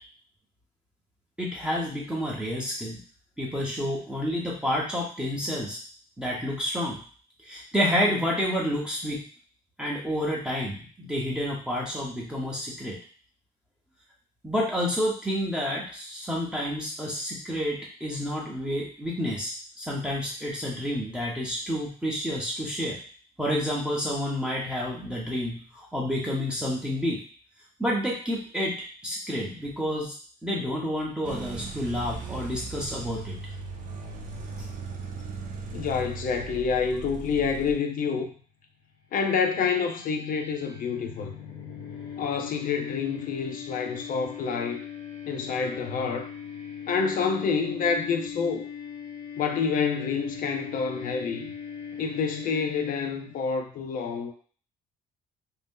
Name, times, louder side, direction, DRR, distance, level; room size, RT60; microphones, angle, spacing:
voice 1, 1.4-3.0 3.4-5.8 6.2-7.0 7.4-9.2 9.8-13.0 14.4-23.0 23.4-27.2 27.8-28.8 29.0-30.2 30.4-33.4, equal, 5° right, -4 dB, 0.7 m, -29 dB
sound 1, 31.2-37.7, right 4 dB, 50° right, 0.6 m, -38 dB
voice 2, 35.7-38.3 39.1-41.3 42.2-44.8 45.3-46.3 46.9-48.7 49.4-51.5 52.0-54.3, left 5 dB, 55° left, 4 dB, 0.6 m, -28 dB
sound 2, 39.3-53.4, left 7 dB, 85° left, 0.8 m, -40 dB
2.7 x 2.0 x 3.5 m, 0.43 s
cardioid pair, 110°, 17 cm